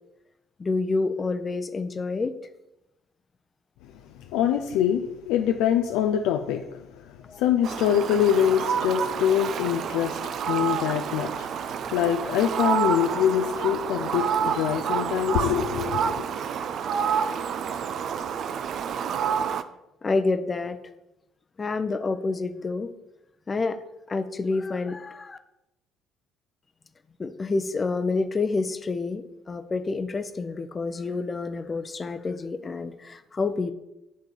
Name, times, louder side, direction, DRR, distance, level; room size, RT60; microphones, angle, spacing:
voice 1, 0.6-2.3 7.3-7.4 20.0-20.8 21.6-22.9 23.5-23.8 24.1-25.4 27.2-33.7, left 3 dB, 30° left, 9 dB, 0.7 m, -28 dB
voice 2, 4.3-6.6 7.0-10.2 10.5-16.3, left 10 dB, 65° left, 5 dB, 0.4 m, -24 dB
Fowl, 7.6-19.6, right 7 dB, 50° right, 0.4 m, -28 dB
8.4 x 3.8 x 6.9 m, 0.90 s
figure-of-eight pair, 50°, 0 cm